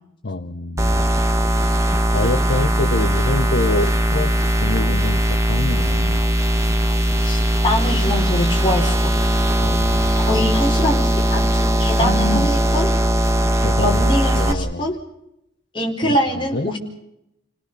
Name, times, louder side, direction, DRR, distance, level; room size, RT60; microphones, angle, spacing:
voice 1, 0.2-1.1 2.1-6.2 9.6-10.5 12.0-12.6 13.6-14.0 14.3-14.9 16.0-16.7, left 2 dB, 55° left, 8 dB, 0.9 m, -26 dB
sound 1, 0.8-14.5, equal, 15° right, 1.5 m, -19 dB
voice 2, 7.2-9.1 10.3-12.9 13.8-15.0 15.7-16.8, left 1 dB, 25° left, -1 dB, 4.5 m, -23 dB
29.5 x 18.0 x 6.8 m, 0.82 s
head